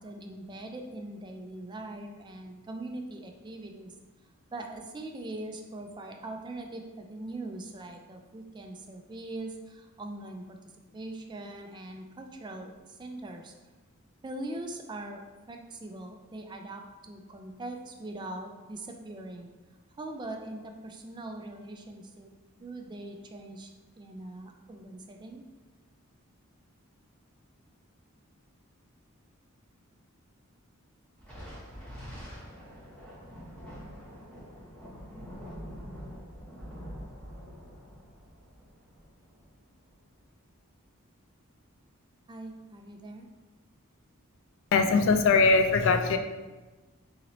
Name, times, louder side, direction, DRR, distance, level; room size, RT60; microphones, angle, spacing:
voice 1, 0.0-3.9 4.5-10.6 10.9-13.5 14.2-15.2 15.5-19.5 20.0-25.5 42.3-43.3, right 2 dB, 20° right, 3 dB, 0.3 m, -41 dB
Thunder, 31.2-39.9, equal, 5° left, 1.0 m, -45 dB
voice 2, 44.7-46.2, left 4 dB, 65° left, 6 dB, 0.3 m, -21 dB
3.0 x 2.9 x 3.9 m, 1.2 s
head